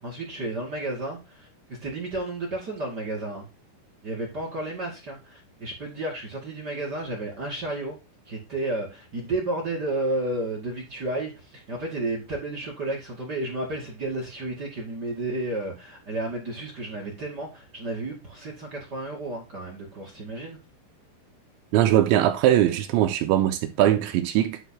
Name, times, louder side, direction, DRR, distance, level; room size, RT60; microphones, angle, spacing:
voice 1, 0.0-3.5 4.0-8.0 8.2-20.6, right 2 dB, 40° right, 1.4 m, -32 dB
voice 2, 21.7-24.6, right 12 dB, 85° right, 2.7 m, -21 dB
11.5 x 4.1 x 4.2 m
omnidirectional pair, 5.8 m